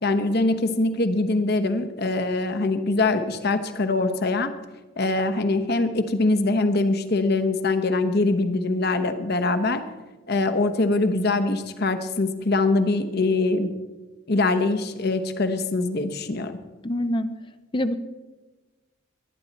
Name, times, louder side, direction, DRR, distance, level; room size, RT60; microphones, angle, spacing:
voice 1, 0.0-4.5 5.0-9.8 10.3-13.7 14.3-16.6, left 2 dB, 50° left, 9 dB, 1.0 m, -23 dB
voice 2, 16.8-17.3 17.7-18.0, left 1 dB, 25° left, 11 dB, 0.5 m, -25 dB
22.0 x 9.6 x 4.2 m, 1.2 s
head